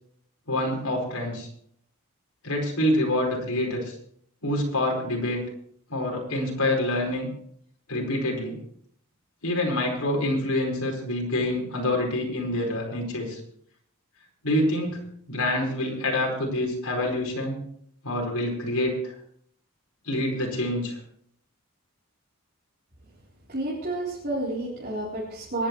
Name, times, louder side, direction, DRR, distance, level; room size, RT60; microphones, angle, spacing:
voice 1, 0.5-1.5 2.4-3.9 4.4-5.5 5.9-7.3 7.9-8.6 9.4-13.4 14.4-15.0 15.3-17.6 18.0-19.1 20.1-21.0, left 1 dB, 90° left, -1 dB, 4.8 m, -26 dB
voice 2, 23.5-25.7, right 1 dB, 45° right, -6 dB, 3.7 m, -30 dB
26.5 x 10.5 x 3.2 m, 0.66 s
head